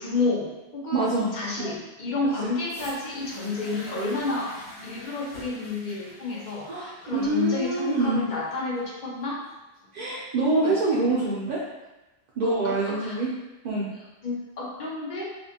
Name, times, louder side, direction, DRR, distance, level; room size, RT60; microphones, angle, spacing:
voice 1, 0.0-4.5 4.8-9.4 10.6-10.7 12.4-13.2 14.2-15.3, left 3 dB, 50° left, -5 dB, 0.7 m, -30 dB
voice 2, 0.9-1.3 1.6-1.8 6.7-8.3 9.9-11.6 12.4-13.3 13.6-13.9, right 2 dB, 55° right, -8 dB, 0.6 m, -25 dB
sound 1, 2.6-10.6 11.5-11.6, left 1 dB, 90° left, 1.1 m, -46 dB
2.5 x 2.4 x 2.7 m, 1.0 s
omnidirectional pair, 1.1 m